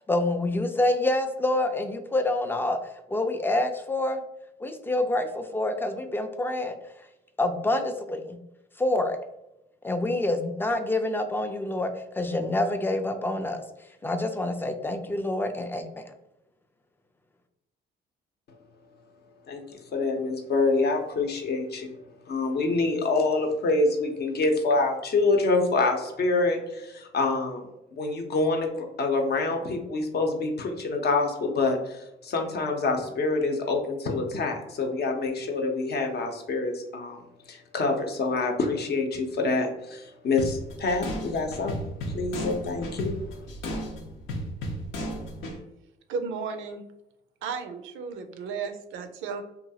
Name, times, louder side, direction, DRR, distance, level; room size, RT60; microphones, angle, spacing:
voice 1, 0.1-2.8 3.1-4.2 4.6-6.8 7.4-8.4 8.8-9.2 9.8-13.6 14.0-16.0, left 1 dB, 10° left, 7 dB, 0.3 m, -27 dB
voice 2, 19.9-21.9 22.3-27.6 27.9-37.2 37.5-43.4, left 3 dB, 55° left, 3 dB, 0.7 m, -26 dB
sound 1, 40.4-45.6, equal, 90° left, 0.7 m, -34 dB
voice 3, 46.1-46.8 47.4-49.4, right 5 dB, 80° right, 7 dB, 0.5 m, -34 dB
2.9 x 2.3 x 2.7 m, 0.91 s
cardioid pair, 90°, 20 cm